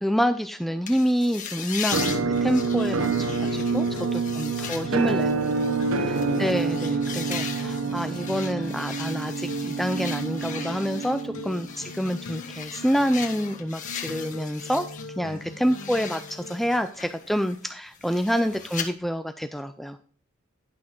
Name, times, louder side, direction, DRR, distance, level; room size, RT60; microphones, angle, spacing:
voice 1, 0.0-5.3 5.9-14.9 15.2-20.0, equal, ahead, 9 dB, 0.4 m, -27 dB
sound 1, 0.9-15.1 15.4-18.9, left 7 dB, 40° left, 1.4 m, -38 dB
Musical instrument, 1.9-11.7, right 4 dB, 80° right, 0.9 m, -27 dB
sound 2, 2.1-16.9, left 2 dB, 80° left, 1.2 m, -42 dB
voice 2, 3.8-6.2 11.3-11.9 15.2-15.6, equal, 55° right, 1 dB, 3.7 m, -46 dB
10.5 x 6.2 x 4.5 m, 0.44 s
head